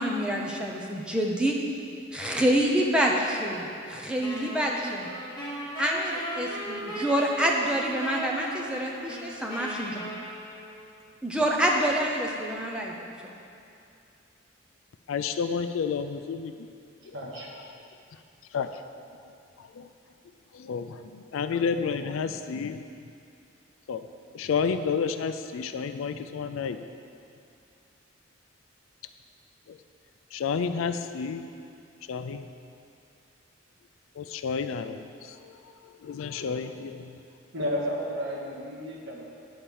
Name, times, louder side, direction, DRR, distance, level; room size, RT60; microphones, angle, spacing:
voice 1, 0.0-1.6 2.1-5.1 5.8-10.1 11.2-12.9, right 1 dB, 5° right, -1 dB, 0.7 m, -27 dB
Wind instrument woodwind instrument, 4.2-10.8, right 1 dB, 20° left, 1.9 m, -37 dB
voice 2, 15.1-16.7 17.3-17.7 18.5-18.8 19.6-19.9 20.5-22.9 23.9-24.0 24.3-26.9 29.7-29.8 30.3-31.5 32.1-32.4 34.2-35.6 35.8-37.2, left 6 dB, 80° left, 9 dB, 0.4 m, -31 dB
voice 3, 17.1-17.5 37.5-39.2, equal, 65° right, -4 dB, 1.5 m, -32 dB
10.0 x 4.3 x 7.0 m, 2.6 s
head